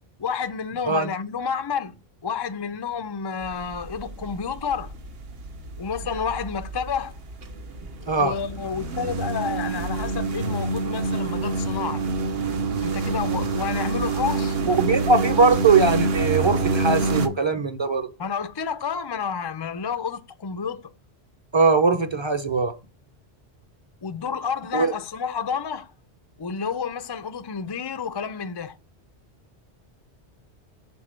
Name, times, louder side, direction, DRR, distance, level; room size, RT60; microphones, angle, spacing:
voice 1, 0.2-2.0 2.2-4.9 5.8-7.1 8.2-12.1 12.8-14.6 18.2-20.8 24.0-25.9 26.4-28.8, left 6 dB, 35° left, 0.4 m, -30 dB
mowinglawn giethoorn fspedit, 3.4-17.3, right 3 dB, 60° right, 1.1 m, -27 dB
voice 2, 14.7-18.1 21.5-22.7 24.7-24.9, right 4 dB, 30° right, 0.8 m, -20 dB
7.0 x 3.9 x 6.4 m
omnidirectional pair, 1.1 m